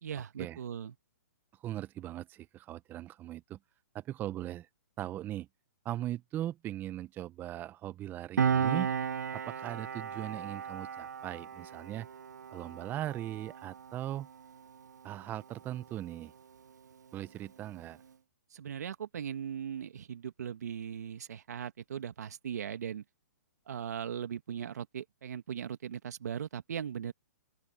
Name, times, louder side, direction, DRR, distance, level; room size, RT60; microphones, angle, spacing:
voice 1, 0.0-0.9 18.5-23.0 23.7-27.1, right 8 dB, 70° right, 1.9 m, -39 dB
voice 2, 1.6-3.6 3.9-4.7 5.0-5.5 5.8-8.9 9.3-12.1 12.5-14.3 15.0-16.3 17.1-18.0, right 13 dB, 20° right, 0.8 m, -39 dB
Piano, 8.4-15.4 15.7-15.9, right 7 dB, 85° right, 0.4 m, -35 dB
open air
hypercardioid pair, 135°, 9 cm